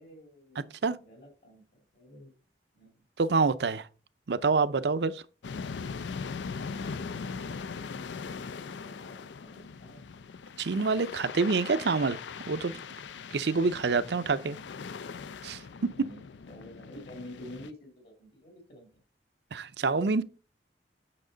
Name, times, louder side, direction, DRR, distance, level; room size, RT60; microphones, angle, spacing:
voice 1, 0.0-1.6 1.9-2.3 2.7-3.0 6.7-10.1 15.9-19.0, left 1 dB, 60° left, 2.3 m, -50 dB
voice 2, 3.2-3.8 4.3-5.2 10.6-12.2 12.5-12.8 13.3-14.6 15.4-15.9 19.5-20.2, right 4 dB, 65° right, 0.6 m, -27 dB
sound 1, 5.4-17.7, left 5 dB, 85° left, 0.4 m, -40 dB
8.7 x 5.9 x 3.9 m
head